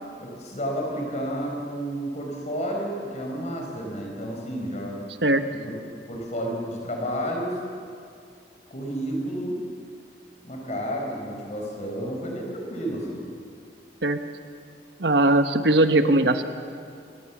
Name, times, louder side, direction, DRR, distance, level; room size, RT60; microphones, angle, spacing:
voice 1, 0.2-5.0 5.5-5.7 6.1-7.6 8.7-9.6 10.4-13.2, equal, 40° left, 0 dB, 5.0 m, -31 dB
voice 2, 15.0-16.4, right 2 dB, 75° right, 8 dB, 1.3 m, -19 dB
28.0 x 22.0 x 7.3 m, 2.3 s
head